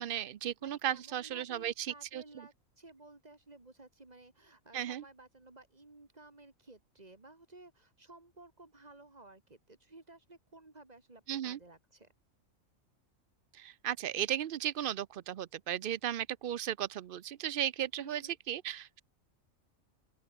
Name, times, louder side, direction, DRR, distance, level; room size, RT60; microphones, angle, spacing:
voice 1, 0.0-2.2 4.7-5.0 11.3-11.6 13.5-19.0, right 11 dB, 60° right, 0.6 m, -35 dB
voice 2, 0.6-12.1 18.0-18.4, right 2 dB, 30° right, 2.8 m, -56 dB
open air
omnidirectional pair, 1.4 m